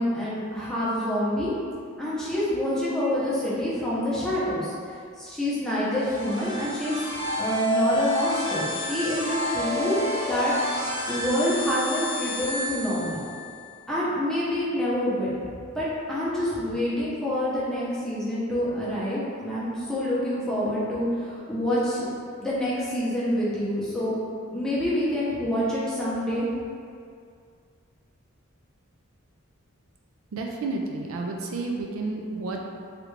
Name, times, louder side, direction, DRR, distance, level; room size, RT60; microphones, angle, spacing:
voice 1, 0.0-1.5 2.0-4.7 5.2-7.0 7.4-10.0 10.3-10.5 11.1-13.2 13.9-15.3 15.8-22.1 22.4-24.2 24.5-26.5, left 1 dB, 5° left, -10 dB, 0.7 m, -27 dB
sound 1, 5.9-13.6, equal, 25° left, 1.0 m, -29 dB
voice 2, 30.3-32.6, right 3 dB, 75° right, 1 dB, 0.4 m, -31 dB
3.2 x 2.4 x 3.2 m, 2.3 s
head